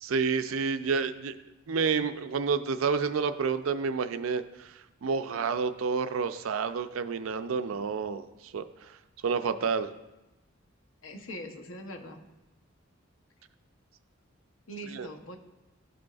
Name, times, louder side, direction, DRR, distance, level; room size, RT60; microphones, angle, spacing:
voice 1, 0.0-1.4 1.7-4.7 5.0-8.2 8.5-8.9 9.2-9.9 14.9-15.1, right 5 dB, 80° right, 10 dB, 0.4 m, -29 dB
voice 2, 11.0-12.2 14.7-15.4, equal, 80° left, 4 dB, 0.9 m, -42 dB
13.0 x 5.0 x 2.3 m, 1.0 s
head